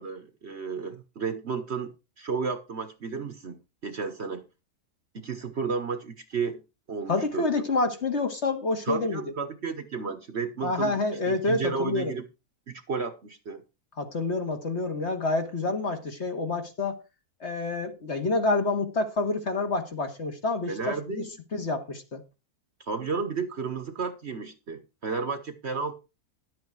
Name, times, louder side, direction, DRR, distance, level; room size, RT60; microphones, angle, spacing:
voice 1, 0.0-1.9 2.2-4.4 5.1-6.6 6.9-7.5 8.9-12.2 12.7-13.6 20.7-21.3 22.8-26.0, right 5 dB, 45° right, 1.3 m, -32 dB
voice 2, 7.1-9.2 10.6-12.1 14.0-17.0 17.4-21.2 21.5-22.2, left 3 dB, 45° left, 1.9 m, -28 dB
11.5 x 8.2 x 4.7 m
omnidirectional pair, 1.7 m